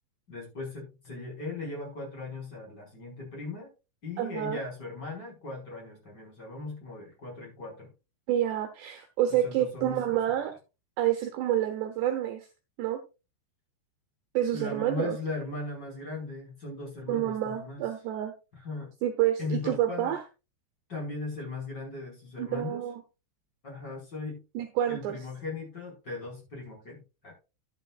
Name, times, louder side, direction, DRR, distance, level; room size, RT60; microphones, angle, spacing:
voice 1, 0.3-3.7 4.0-7.9 9.3-10.2 14.5-17.8 18.6-18.9 19.4-20.1 20.9-22.9 23.6-24.4 24.9-27.0 27.2-27.3, left 3 dB, 20° left, -1 dB, 5.4 m, -38 dB
voice 2, 4.2-4.6 8.3-10.5 11.0-12.5 12.8-13.0 14.3-15.2 17.1-18.3 19.0-20.2 22.4-23.0 24.5-25.2, right 11 dB, 75° right, 7 dB, 2.9 m, -28 dB
12.0 x 11.0 x 2.4 m, 0.29 s
omnidirectional pair, 5.5 m